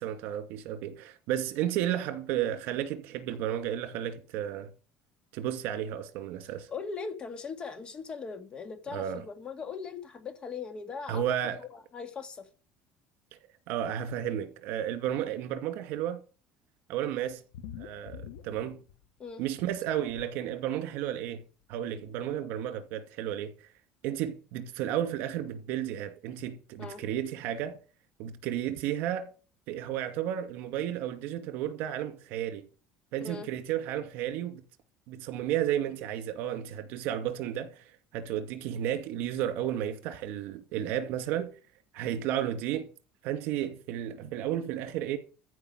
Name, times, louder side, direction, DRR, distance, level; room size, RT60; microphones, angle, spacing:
voice 1, 0.0-4.7 5.3-6.7 8.9-9.2 11.1-11.6 13.7-16.2 16.9-17.4 17.8-18.8 19.4-21.4 21.7-23.5 24.0-27.8 28.2-29.3 29.7-32.7 33.1-34.6 35.1-37.8 38.1-41.5 41.9-42.9 43.2-45.2, right 11 dB, 70° right, 2.4 m, -32 dB
voice 2, 6.7-11.2 11.6-12.5 19.2-19.4 26.8-27.0 33.2-33.5, left 5 dB, 30° left, 2.1 m, -39 dB
sound 1, 17.5-19.3 19.6-20.3 21.3-21.4 21.7-21.8 22.0-22.1, left 8 dB, 90° left, 1.2 m, -45 dB
14.5 x 5.4 x 9.4 m
cardioid pair, 145°, 4 cm